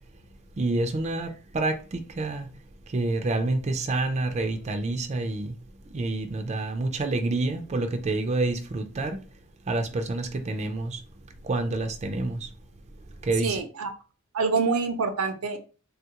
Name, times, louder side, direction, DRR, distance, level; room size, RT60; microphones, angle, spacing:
voice 1, 0.6-2.5 2.9-5.5 5.9-9.2 9.7-11.0 11.4-12.5 13.2-13.6, right 2 dB, 30° right, 0.4 m, -28 dB
voice 2, 13.4-13.9 14.3-15.6, right 4 dB, 90° right, 0.6 m, -26 dB
3.4 x 2.3 x 2.8 m
head